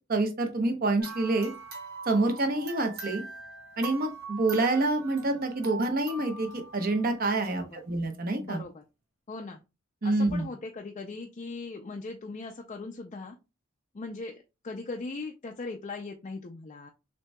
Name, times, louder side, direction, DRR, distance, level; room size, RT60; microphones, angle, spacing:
voice 1, 0.1-1.5 2.1-3.2 3.8-8.6 10.0-10.5, right 2 dB, 50° right, 5 dB, 0.9 m, -27 dB
sound 1, 1.0-7.5, right 4 dB, 75° right, 2.6 m, -42 dB
voice 2, 7.5-7.8 8.4-8.8 9.3-9.6 10.0-13.4 13.9-16.9, left 3 dB, 35° left, 2 dB, 0.4 m, -39 dB
6.4 x 2.7 x 2.2 m, 0.27 s
head